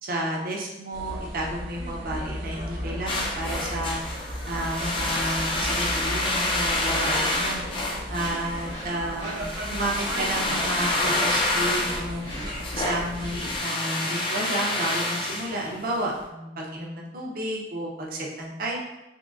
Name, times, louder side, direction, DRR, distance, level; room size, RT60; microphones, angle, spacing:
voice 1, 0.0-4.0 4.4-7.6 8.1-12.3 12.7-18.8, right 1 dB, 50° right, -2 dB, 0.7 m, -31 dB
sound 1, 0.9-13.6, equal, 90° right, 0.9 m, -36 dB
sound 2, 3.1-16.1, left 2 dB, 30° left, 0.4 m, -28 dB
sound 3, 7.2-16.3, equal, 80° left, 1.2 m, -47 dB
3.7 x 2.7 x 2.5 m, 0.98 s
head